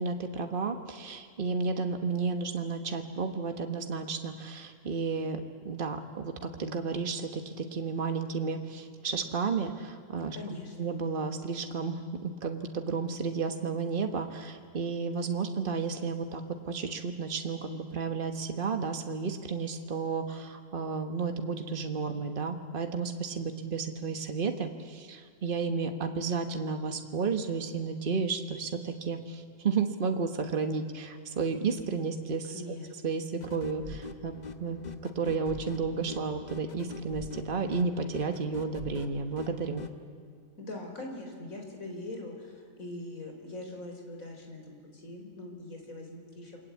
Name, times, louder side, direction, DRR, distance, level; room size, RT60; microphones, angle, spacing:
voice 1, 0.0-10.4 10.8-32.8 33.0-34.3 34.6-34.8 35.1-39.8, right 5 dB, 40° right, 5 dB, 1.6 m, -32 dB
voice 2, 10.3-10.7 32.5-32.9 40.6-46.6, left 2 dB, 75° left, 2 dB, 4.7 m, -42 dB
sound 1, 33.4-40.0, left 3 dB, 35° left, 1.2 m, -44 dB
28.5 x 22.0 x 8.5 m, 2.1 s
omnidirectional pair, 1.4 m